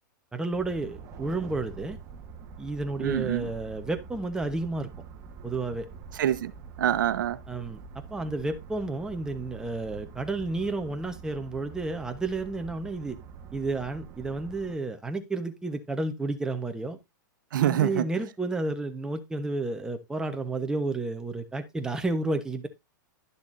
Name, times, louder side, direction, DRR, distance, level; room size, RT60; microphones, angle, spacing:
voice 1, 0.3-2.0 2.6-4.9 5.4-5.9 7.5-13.2 13.5-17.0 17.6-22.7, right 2 dB, 5° right, 1.0 m, -31 dB
sound 1, 0.5-14.8, right 6 dB, 30° right, 1.6 m, -45 dB
voice 2, 3.0-3.5 6.2-6.5 6.8-7.4 17.5-18.0, right 11 dB, 75° right, 1.0 m, -25 dB
12.0 x 6.9 x 2.6 m
supercardioid pair, 150°, 11 cm